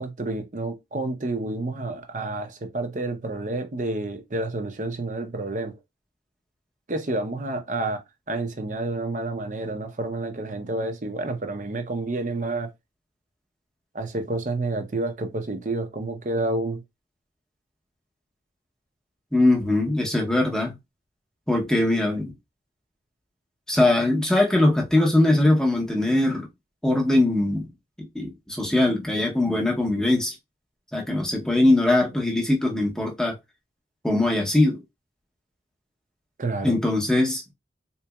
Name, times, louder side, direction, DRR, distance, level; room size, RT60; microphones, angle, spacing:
voice 1, 0.0-5.7 6.9-8.0 8.3-12.7 13.9-16.8 36.4-36.8, right 2 dB, 40° right, 0.7 m, -29 dB
voice 2, 19.3-20.8 21.5-22.3 23.7-26.5 26.8-27.7 28.0-30.4 30.9-33.4 34.0-34.8 36.6-37.4, left 2 dB, 5° left, 0.8 m, -21 dB
4.0 x 2.9 x 2.3 m
head